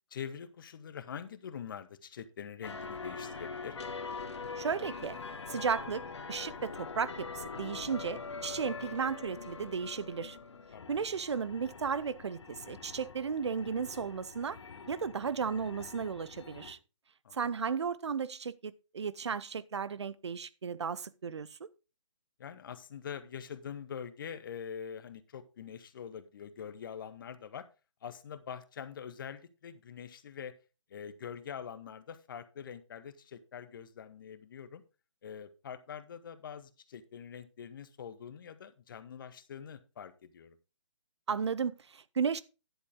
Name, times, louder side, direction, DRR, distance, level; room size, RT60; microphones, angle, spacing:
voice 1, 0.1-3.8 10.7-10.9 17.2-17.4 22.4-27.7 28.0-30.5 30.9-34.8 35.2-40.6, left 7 dB, 45° left, 1.0 m, -44 dB
sound 1, 2.6-16.7, left 4 dB, 60° left, 1.5 m, -44 dB
voice 2, 4.6-5.2 5.5-10.4 10.9-14.6 14.9-16.8 17.3-21.7 41.3-42.4, right 6 dB, 60° right, 0.7 m, -34 dB
10.5 x 8.2 x 3.6 m
figure-of-eight pair, 135°, 16 cm